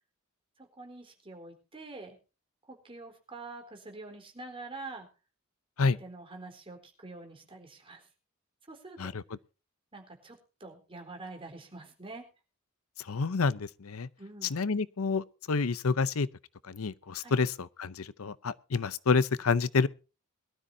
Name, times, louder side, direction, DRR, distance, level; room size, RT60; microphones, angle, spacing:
voice 1, 0.6-2.2 2.7-5.1 5.8-8.0 8.7-9.2 9.9-12.3 14.2-14.5 17.2-17.4, right 3 dB, 25° right, 3.9 m, -46 dB
voice 2, 13.1-14.1 14.5-16.3 16.7-17.5 17.8-19.9, left 4 dB, 80° left, 0.7 m, -28 dB
22.5 x 13.0 x 2.7 m
head